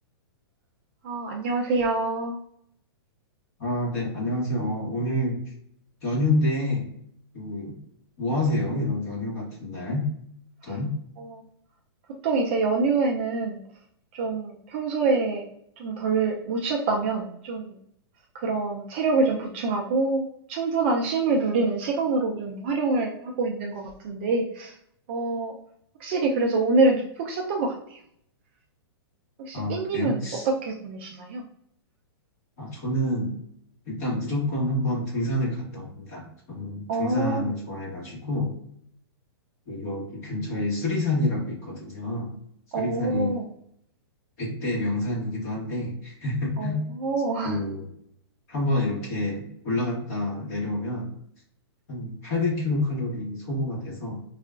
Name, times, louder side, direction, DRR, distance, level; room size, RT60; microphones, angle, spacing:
voice 1, 1.0-2.4 11.2-11.4 12.2-13.6 14.1-15.4 15.8-17.8 18.3-24.7 25.1-25.5 26.0-28.0 29.4-31.4 36.9-37.5 42.7-43.4 46.6-47.6, right 3 dB, 30° right, 1 dB, 0.3 m, -26 dB
voice 2, 3.6-5.4 6.0-6.9 7.3-7.7 8.2-10.1 10.6-10.9 29.5-30.5 32.6-33.4 33.8-38.5 39.7-42.3 42.7-43.4 44.4-46.9 47.4-47.9 48.5-51.1 51.9-54.2, left 1 dB, 40° left, -4 dB, 1.4 m, -28 dB
3.7 x 2.3 x 2.3 m, 0.71 s
hypercardioid pair, 165°, 13 cm